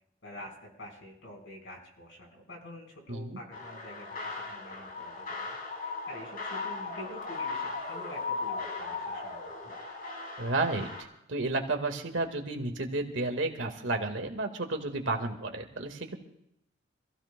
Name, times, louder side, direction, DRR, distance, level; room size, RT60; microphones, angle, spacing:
voice 1, 0.2-9.7, left 1 dB, 70° left, 1 dB, 4.3 m, -47 dB
sound 1, 3.5-11.0, left 4 dB, 45° left, 2.6 m, -37 dB
voice 2, 10.4-16.2, right 2 dB, 70° right, 5 dB, 1.7 m, -32 dB
26.0 x 15.5 x 2.2 m, 0.81 s
head